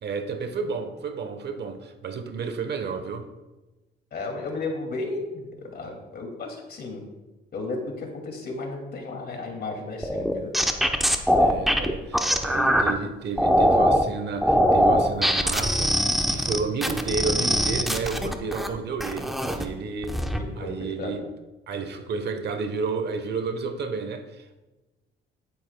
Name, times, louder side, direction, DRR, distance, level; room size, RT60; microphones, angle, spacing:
voice 1, 0.0-3.3 11.4-20.2 20.6-21.2 21.7-24.6, right 4 dB, 60° right, 1.0 m, -31 dB
voice 2, 4.1-7.1 7.5-10.5 20.3-20.7 21.0-21.2, left 3 dB, 55° left, 2.3 m, -34 dB
sound 1, 10.0-12.9 13.4-14.0 14.4-18.7 19.0-19.7 20.0-20.4, equal, ahead, 0.8 m, -22 dB
10.0 x 9.4 x 2.2 m
cardioid pair, 90°, 20 cm